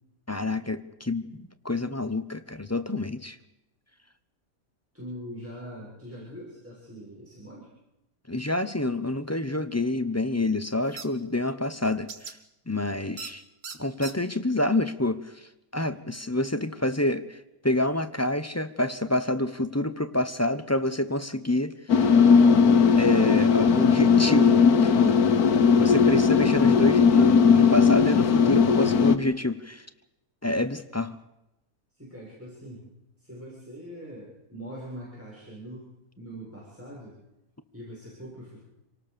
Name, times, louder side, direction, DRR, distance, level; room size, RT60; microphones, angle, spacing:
voice 1, 0.3-3.4 8.3-12.3 12.7-13.4 13.8-15.2 15.7-17.4 17.6-21.7 23.0-25.2 25.8-29.9 30.4-31.2, left 1 dB, 15° left, 10 dB, 0.8 m, -27 dB
voice 2, 4.9-7.7 31.9-32.8 33.2-35.9 36.2-37.1 37.7-38.6, equal, 10° right, -6 dB, 6.9 m, -42 dB
sound 1, 11.0-11.1 12.1-12.3 13.2-13.3 13.6-14.1, right 5 dB, 80° right, 2.0 m, -38 dB
sound 2, 21.9-29.2, left 6 dB, 85° left, 1.6 m, -18 dB
27.0 x 18.5 x 6.9 m, 0.90 s
omnidirectional pair, 1.5 m